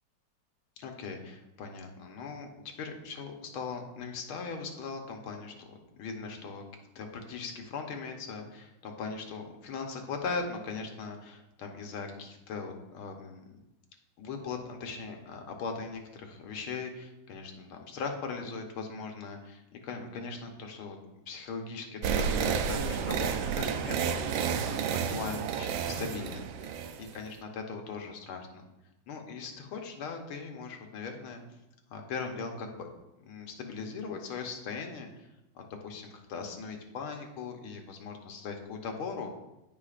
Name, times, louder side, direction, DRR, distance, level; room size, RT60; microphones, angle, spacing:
voice 1, 0.8-2.5 2.8-6.6 7.0-13.5 14.2-21.0 21.3-24.8 25.1-28.6 29.1-31.4 31.9-32.9 33.2-35.3 35.6-39.4, left 4 dB, 85° left, 3 dB, 1.9 m, -39 dB
sound 1, 22.0-27.3, right 7 dB, 75° right, 1.3 m, -31 dB
15.0 x 5.1 x 2.5 m, 0.95 s
omnidirectional pair, 2.2 m